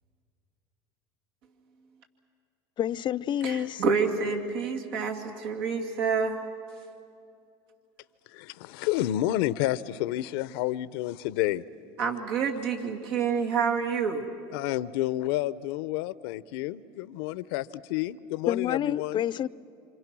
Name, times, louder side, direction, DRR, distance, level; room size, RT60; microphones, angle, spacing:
voice 1, 2.8-3.8 18.5-19.5, left 10 dB, 40° left, 0.5 m, -28 dB
voice 2, 3.4-6.4 12.0-14.2, right 5 dB, 80° right, 2.5 m, -28 dB
voice 3, 8.3-11.6 14.5-19.2, left 15 dB, 75° left, 0.7 m, -30 dB
27.5 x 27.0 x 6.1 m
supercardioid pair, 95°, 13 cm